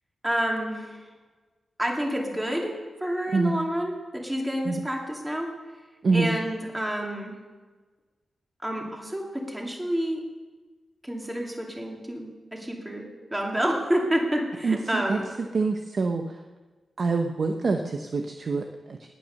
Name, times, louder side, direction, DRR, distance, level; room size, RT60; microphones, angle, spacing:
voice 1, 0.2-1.0 1.8-5.5 6.1-7.3 8.6-10.2 11.0-15.2, equal, 10° right, 0 dB, 2.7 m, -29 dB
voice 2, 14.6-15.2 15.5-16.4 17.0-19.1, right 4 dB, 50° right, 4 dB, 0.9 m, -26 dB
19.0 x 8.8 x 6.5 m, 1.3 s
wide cardioid pair, 140°, 0 cm